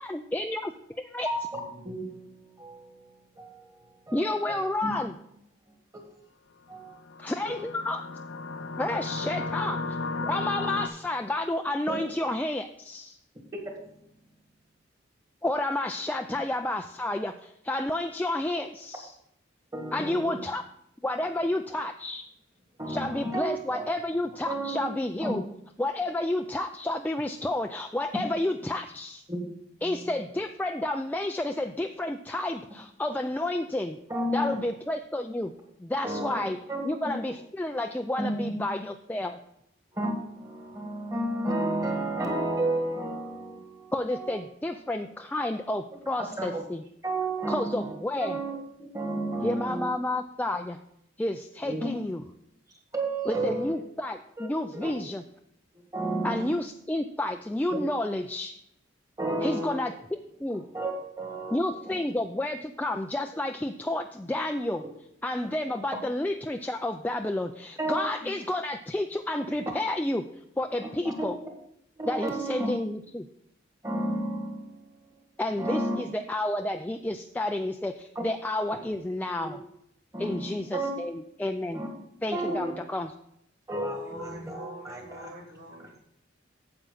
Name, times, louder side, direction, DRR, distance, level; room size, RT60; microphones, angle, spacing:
voice 1, 0.0-1.3 4.1-5.1 7.2-8.0 8.8-13.2 15.4-19.1 19.9-20.6 21.0-22.2 22.9-25.4 25.8-29.2 29.8-34.0 34.3-35.5 35.8-36.6 36.8-39.4 43.9-46.8 47.5-48.4 49.4-50.8 51.2-52.2 53.3-55.2 56.2-58.5 59.4-60.6 61.5-64.8 65.2-70.2 70.6-71.4 72.1-73.3 75.4-79.6 80.2-81.8 82.2-83.1, left 1 dB, 10° left, 5 dB, 0.3 m, -30 dB
voice 2, 1.2-4.9 5.9-6.0 6.7-7.0 7.4-7.7 11.9-12.0 19.7-20.4 22.8-23.8 24.5-24.9 25.2-25.4 29.3-29.4 29.8-30.1 34.1-34.6 36.0-36.3 36.7-37.2 38.2-38.6 39.9-44.4 46.4-46.6 47.0-49.9 51.6-51.9 52.9-53.7 54.4-54.5 54.7-54.9 55.9-56.5 57.7-57.8 59.2-59.9 60.7-62.0 67.8-68.3 71.0-71.5 72.0-72.8 73.8-75.1 75.6-76.0 78.1-78.2 79.4-79.5 80.1-80.9 81.7-81.9 82.3-82.7 83.7-85.3 85.8-85.9, right 1 dB, 20° right, 2 dB, 1.8 m, -32 dB
sound 1, 6.9-10.9, left 3 dB, 85° left, 0.5 m, -34 dB
voice 3, 83.9-85.9, equal, 65° right, -8 dB, 3.1 m, -44 dB
9.0 x 7.6 x 3.9 m, 0.75 s
head